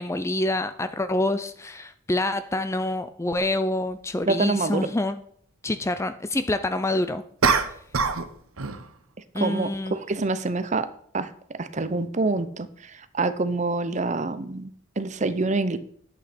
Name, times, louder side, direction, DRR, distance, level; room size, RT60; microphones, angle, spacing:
voice 1, 0.0-5.2 5.6-7.2 9.3-10.0, left 2 dB, 15° left, 11 dB, 0.4 m, -26 dB
sound 1, 3.4-3.5 7.4-8.3 8.6-8.9, right 5 dB, 85° right, 1.0 m, -23 dB
voice 2, 4.3-4.9 9.4-15.8, right 3 dB, 35° right, 13 dB, 0.7 m, -27 dB
11.5 x 8.2 x 4.3 m, 0.63 s
head